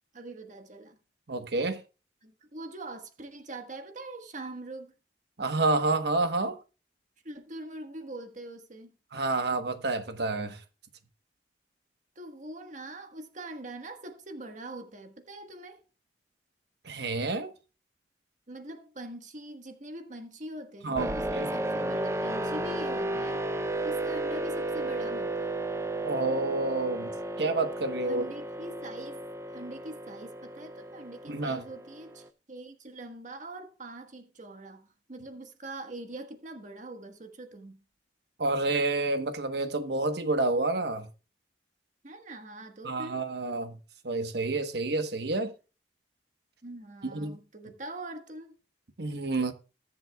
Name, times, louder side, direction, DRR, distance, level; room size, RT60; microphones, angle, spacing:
voice 1, 0.1-1.0 2.2-4.9 7.2-8.9 12.1-15.8 18.5-23.4 23.7-25.5 28.0-37.8 42.0-43.2 46.6-48.6, right 1 dB, 45° right, 1.4 m, -43 dB
voice 2, 1.3-1.8 5.4-6.6 9.1-10.6 16.8-17.5 20.8-21.5 26.0-27.1 27.4-28.2 31.3-31.6 38.4-41.1 42.8-43.8 44.0-45.5 47.1-47.4 49.0-49.5, right 2 dB, 70° right, 1.1 m, -29 dB
sound 1, 21.0-32.3, right 1 dB, 15° right, 0.6 m, -33 dB
20.0 x 7.5 x 2.3 m
head